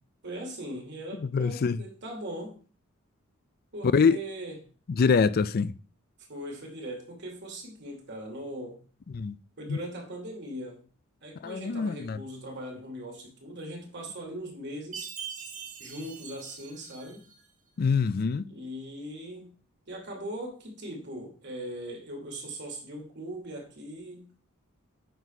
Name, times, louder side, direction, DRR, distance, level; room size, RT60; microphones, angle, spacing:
voice 1, 0.2-2.6 3.7-4.6 6.3-8.8 9.6-10.8 11.2-15.1 15.8-17.3 18.5-19.5 19.9-24.3, right 1 dB, 55° right, 2.8 m, -40 dB
voice 2, 1.2-1.8 3.9-4.2 4.9-5.7 9.1-9.4 9.7-9.8 11.4-12.2 17.8-18.5, left 5 dB, 45° left, 0.4 m, -24 dB
Chime, 14.9-17.4, right 7 dB, 40° right, 1.8 m, -42 dB
9.2 x 4.1 x 5.5 m
head